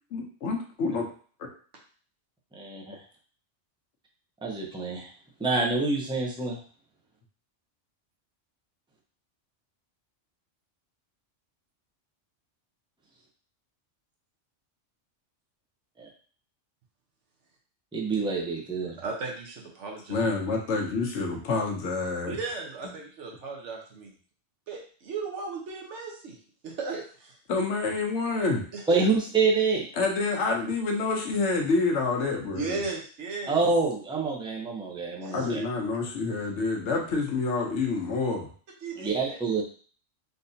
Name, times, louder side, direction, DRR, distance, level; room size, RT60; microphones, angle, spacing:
voice 1, 0.1-1.0 20.1-22.4 27.5-28.6 30.0-32.8 35.3-38.5, left 3 dB, 75° left, 1 dB, 1.0 m, -28 dB
voice 2, 2.5-3.0 4.4-5.1 5.4-6.6 16.0-16.1 17.9-18.9 28.9-29.8 33.5-35.6 39.0-39.6, right 4 dB, 5° right, -2 dB, 0.4 m, -26 dB
voice 3, 19.0-20.3 22.3-24.1 24.7-26.4 26.6-27.3 28.7-29.0 32.5-33.6 35.2-35.5 38.8-39.4, right 4 dB, 75° right, -1 dB, 1.2 m, -36 dB
3.9 x 2.7 x 2.6 m, 0.43 s
omnidirectional pair, 1.2 m